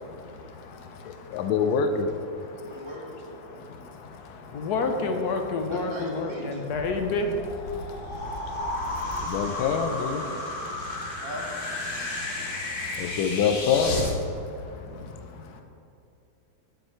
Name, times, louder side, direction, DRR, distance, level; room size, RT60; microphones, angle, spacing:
voice 1, 0.1-1.5 2.3-2.9 3.4-9.7 10.2-11.3 11.9-13.4 14.3-15.6, left 3 dB, 65° left, 4 dB, 1.1 m, -33 dB
voice 2, 1.3-2.1 9.2-10.3 13.0-14.1, left 6 dB, 85° left, 7 dB, 1.4 m, -25 dB
voice 3, 2.6-3.6 5.6-6.7 11.2-11.4 14.5-15.1, equal, 30° right, -3 dB, 1.6 m, -40 dB
sound 1, 6.7-14.1, left 1 dB, 35° left, 1.0 m, -33 dB
9.2 x 7.4 x 4.5 m, 2.6 s
omnidirectional pair, 2.2 m